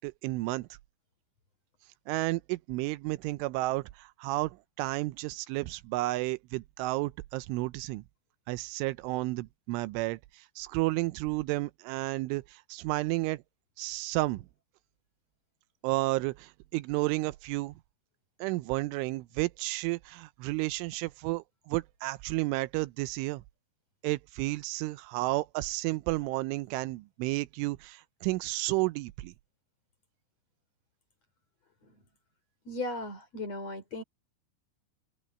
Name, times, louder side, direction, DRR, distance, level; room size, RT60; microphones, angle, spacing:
voice 1, 0.0-0.7 2.1-8.0 8.5-13.4 13.8-14.4 15.8-17.7 18.4-23.4 24.0-29.3, right 20 dB, 85° right, 3.2 m, -32 dB
voice 2, 32.7-34.0, left 2 dB, 35° left, 5.3 m, -37 dB
omnidirectional pair, 5.5 m